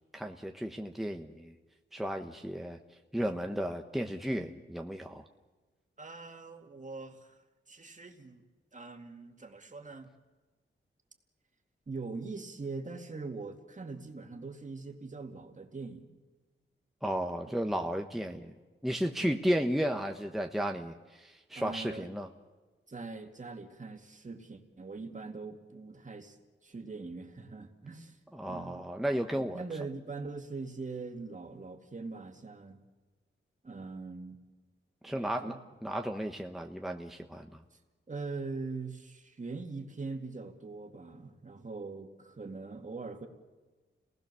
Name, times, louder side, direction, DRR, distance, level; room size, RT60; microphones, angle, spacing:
voice 1, 0.1-1.5 1.9-2.8 3.1-5.2 17.0-18.5 18.8-22.3 28.3-29.6 35.0-35.5 35.8-37.5, equal, ahead, 3 dB, 1.0 m, -33 dB
voice 2, 6.0-7.4 7.7-8.5 8.7-10.1 11.9-16.1 17.5-17.6 17.9-18.4 19.2-19.4 21.6-22.1 22.9-26.4 26.6-28.2 28.5-28.8 29.3-32.8 33.6-34.4 35.1-35.6 37.7-37.8 38.1-43.3, right 3 dB, 40° right, 4 dB, 2.4 m, -42 dB
30.0 x 19.5 x 6.9 m, 1.3 s
wide cardioid pair, 125°, 21 cm